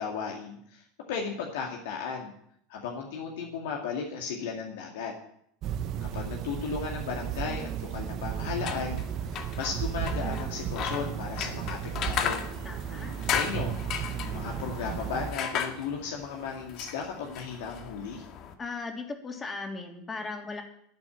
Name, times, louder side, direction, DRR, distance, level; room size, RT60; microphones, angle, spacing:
voice 1, 0.0-2.3 2.7-5.1 6.0-9.0 9.3-12.4 13.3-13.8 14.2-18.3, left 6 dB, 65° left, 0 dB, 2.2 m, -35 dB
sound 1, 5.6-15.3, right 9 dB, 45° right, 1.2 m, -34 dB
sound 2, 8.5-18.5, left 8 dB, 45° left, 1.8 m, -36 dB
voice 2, 12.6-13.2 18.6-20.6, left 3 dB, 20° left, 3 dB, 3.2 m, -37 dB
12.0 x 8.9 x 9.0 m, 0.71 s
figure-of-eight pair, 75°, 0 cm